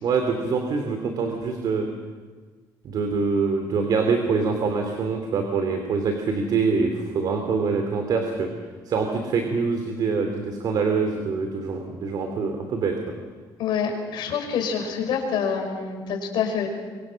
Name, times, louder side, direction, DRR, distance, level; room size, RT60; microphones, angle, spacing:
voice 1, 0.0-1.9 2.8-8.5 8.9-13.0, right 4 dB, 55° right, 5 dB, 2.8 m, -25 dB
voice 2, 13.6-16.7, left 6 dB, 70° left, 2 dB, 5.7 m, -26 dB
24.5 x 24.5 x 6.4 m, 1.5 s
cardioid pair, 125°, 8 cm